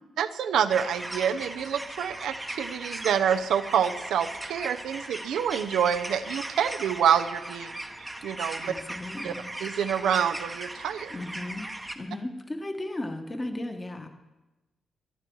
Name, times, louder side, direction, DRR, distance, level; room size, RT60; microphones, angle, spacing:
voice 1, 0.2-7.8 8.2-8.7 9.2-9.3 9.6-11.2, right 8 dB, 85° right, 8 dB, 0.7 m, -27 dB
sound 1, 0.7-11.9, right 1 dB, 5° right, 1.0 m, -38 dB
voice 2, 8.6-9.4 11.1-11.7 11.9-14.1, left 1 dB, 15° left, 5 dB, 1.3 m, -35 dB
20.5 x 12.0 x 4.7 m, 1.1 s
wide cardioid pair, 175°, 0 cm